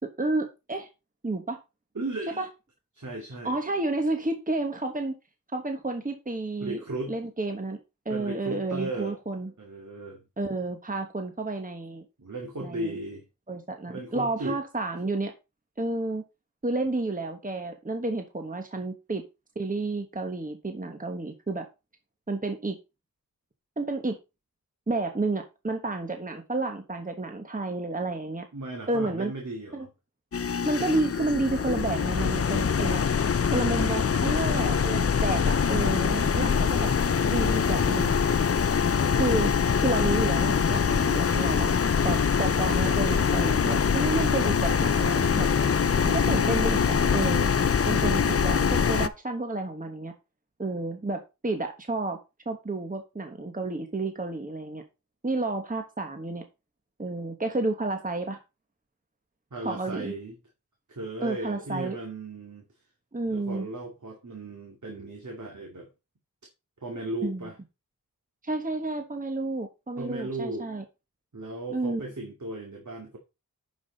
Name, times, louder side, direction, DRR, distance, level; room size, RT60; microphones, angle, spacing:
voice 1, 0.0-0.9 1.2-1.6 2.4-2.5 3.4-5.1 5.5-6.8 7.1-7.8 8.0-9.5 10.4-12.0 12.6-12.9 13.5-15.3 15.8-16.2 16.6-19.2 19.5-21.7 22.3-22.8 23.8-24.2 24.9-28.4 28.9-29.3 29.7-29.9 30.6-33.1 33.5-36.9 37.3-38.2 39.1-39.5 39.8-41.7 42.0-45.5 46.0-47.5 47.9-50.1 50.6-52.2 52.4-54.8 55.2-56.4 57.0-58.4 59.6-60.1 61.2-62.0 63.1-63.7 67.2-67.5 68.4-70.8 71.7-72.0, right 2 dB, 25° right, 1.3 m, -30 dB
voice 2, 1.9-2.4 2.9-3.6 6.6-7.2 8.1-9.2 9.6-10.3 12.2-13.3 13.9-14.6 28.5-29.9 34.4-34.9 36.3-36.7 59.5-60.4 60.9-62.6 63.3-65.9 66.8-67.6 70.0-70.7 71.3-73.2, right 2 dB, 55° right, 2.4 m, -36 dB
sound 1, 30.3-49.1, left 6 dB, 40° left, 0.5 m, -24 dB
11.0 x 5.6 x 4.1 m
wide cardioid pair, 85°, 35 cm